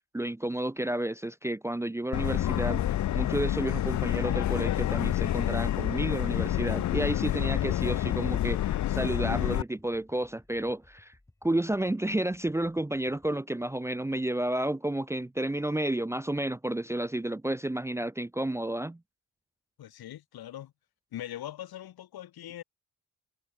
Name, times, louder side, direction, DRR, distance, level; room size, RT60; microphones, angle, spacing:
voice 1, 0.1-11.1 11.4-19.0, right 1 dB, 5° right, 0.8 m, -31 dB
Subway metro underground, 2.1-9.6, left 12 dB, 50° left, 0.6 m, -28 dB
sound 1, 9.4-13.4, left 1 dB, 10° left, 4.0 m, -61 dB
voice 2, 19.8-20.7 21.1-22.6, left 12 dB, 75° left, 5.2 m, -41 dB
cardioid pair, 155°, 37 cm